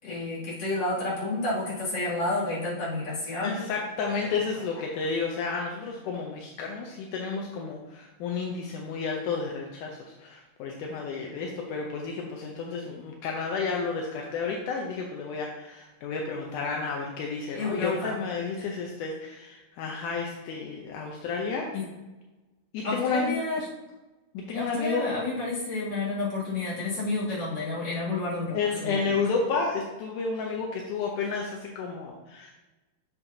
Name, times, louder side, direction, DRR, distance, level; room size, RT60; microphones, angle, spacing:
voice 1, 0.0-3.6 4.1-4.4 17.5-18.2 18.6-18.8 21.7-21.8 22.8-23.7 24.5-29.1, left 2 dB, 30° left, -9 dB, 2.7 m, -30 dB
voice 2, 3.4-21.7 22.7-23.4 24.3-25.0 28.5-32.5, left 4 dB, 80° left, 0 dB, 1.8 m, -31 dB
8.1 x 7.0 x 2.7 m, 1.1 s
omnidirectional pair, 4.5 m